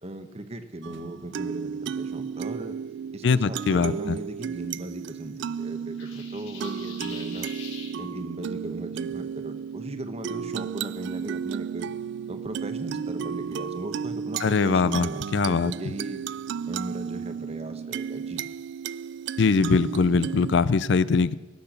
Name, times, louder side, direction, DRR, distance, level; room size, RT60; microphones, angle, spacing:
voice 1, 0.0-2.8 3.1-11.9 12.3-16.2 16.7-18.4, right 1 dB, 30° right, 9 dB, 1.0 m, -38 dB
sound 1, 0.8-20.5, right 7 dB, 60° right, 0.3 m, -34 dB
voice 2, 3.2-4.2 14.4-15.7 19.4-21.4, left 4 dB, 60° left, 17 dB, 0.4 m, -22 dB
sound 2, 6.0-7.9, left 5 dB, 85° left, 3.7 m, -43 dB
18.0 x 6.8 x 6.6 m, 1.2 s
head